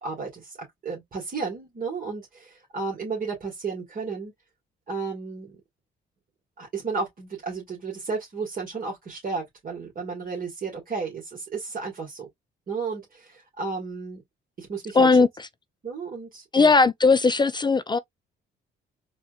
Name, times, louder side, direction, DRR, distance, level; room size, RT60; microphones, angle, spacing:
voice 1, 0.0-4.3 4.9-5.6 6.6-12.3 12.7-14.2 14.6-15.3 15.8-16.7, right 4 dB, 45° right, 1.8 m, -33 dB
voice 2, 15.0-15.3 16.5-18.0, left 4 dB, 25° left, 0.3 m, -18 dB
4.2 x 2.5 x 2.3 m
cardioid pair, 90°, 20 cm